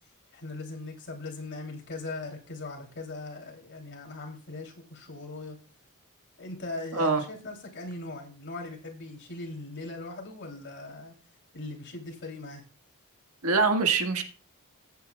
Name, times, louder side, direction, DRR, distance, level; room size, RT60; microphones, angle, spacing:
voice 1, 0.3-5.6 6.4-11.1 11.5-12.6, left 2 dB, 55° left, 1 dB, 2.9 m, -39 dB
voice 2, 6.9-7.2 13.4-14.2, right 4 dB, 80° right, 6 dB, 1.6 m, -24 dB
15.0 x 8.7 x 2.3 m, 0.37 s
head